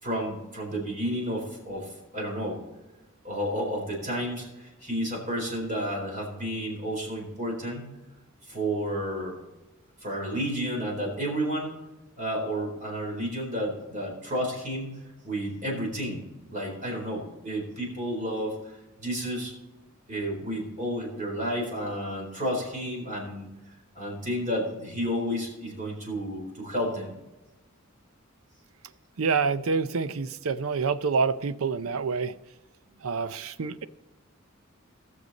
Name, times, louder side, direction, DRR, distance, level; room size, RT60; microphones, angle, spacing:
voice 1, 0.0-2.6 3.2-7.9 8.5-9.4 10.0-11.8 12.2-16.2 16.5-18.7 19.0-19.5 20.1-23.5 23.9-27.1, equal, 40° right, 4.1 m, -31 dB
voice 2, 29.2-32.4 33.0-33.9, right 5 dB, 85° right, 0.6 m, -27 dB
19.5 x 6.8 x 4.1 m
head